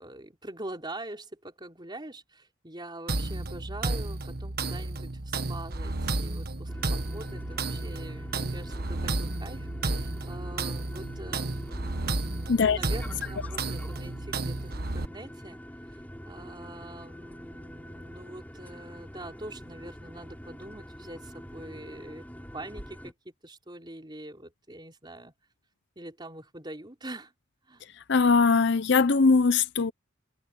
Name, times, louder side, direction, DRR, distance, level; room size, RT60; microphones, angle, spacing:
voice 1, 0.0-12.0 12.6-15.6 15.9-16.0 16.3-22.3 22.5-25.3 26.0-27.3 27.7-27.8, right 1 dB, 25° right, 4.0 m, -44 dB
sound 1, 3.1-15.1, right 2 dB, 50° right, 1.4 m, -32 dB
sound 2, 6.7-23.1, equal, 10° left, 5.6 m, -45 dB
voice 2, 28.1-29.9, left 4 dB, 60° left, 0.7 m, -21 dB
head